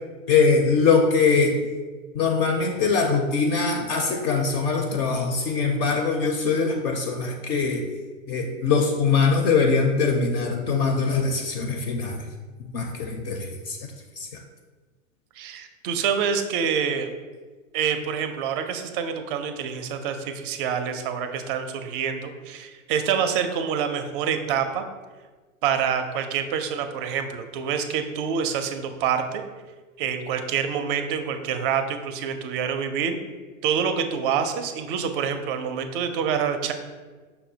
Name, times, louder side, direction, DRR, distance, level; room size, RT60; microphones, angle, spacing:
voice 1, 0.3-1.7 2.1-7.8 8.3-12.2 12.7-13.8 14.2-14.4, left 4 dB, 45° left, 3 dB, 0.4 m, -22 dB
voice 2, 15.4-17.1 17.7-24.8 25.6-29.4 30.0-33.2 33.6-36.7, right 7 dB, 45° right, 7 dB, 0.4 m, -26 dB
5.4 x 2.1 x 2.7 m, 1.4 s
hypercardioid pair, 105°, 40 cm